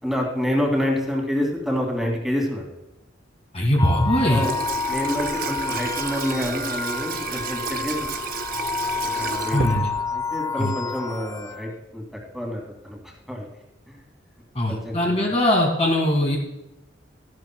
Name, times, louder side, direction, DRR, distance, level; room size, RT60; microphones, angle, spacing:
voice 1, 0.0-2.7 4.3-4.5 4.9-8.2 9.0-9.8 10.1-12.0 12.3-13.5 13.9-14.0 14.7-15.2, equal, ahead, -1 dB, 2.4 m, -27 dB
voice 2, 3.5-4.5 9.5-9.9 10.6-10.7 14.6-16.4, left 1 dB, 35° left, 0 dB, 1.9 m, -21 dB
sound 1, 3.8-11.7, left 5 dB, 20° left, 0.3 m, -30 dB
Water tap faucet / Sink (filling or washing), 4.1-10.3, right 6 dB, 50° right, 0.6 m, -32 dB
16.0 x 12.0 x 2.3 m, 0.90 s
head